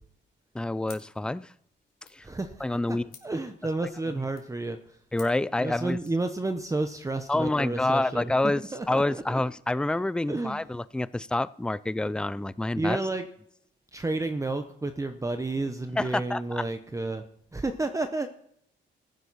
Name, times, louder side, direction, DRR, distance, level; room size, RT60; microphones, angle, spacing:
voice 1, 0.5-1.5 2.1-2.2 2.6-3.1 5.1-6.0 7.3-13.0 16.0-16.6, left 2 dB, 5° left, 18 dB, 0.4 m, -28 dB
sound 1, 0.8-6.2, left 6 dB, 50° left, 3.0 m, -55 dB
voice 2, 2.2-2.6 3.2-5.0 5.6-8.3 8.7-9.4 10.3-10.6 12.8-13.2 13.9-17.2 17.5-18.3, right 2 dB, 15° right, 7 dB, 0.9 m, -31 dB
15.0 x 10.5 x 4.2 m, 0.70 s
cardioid pair, 90°, 20 cm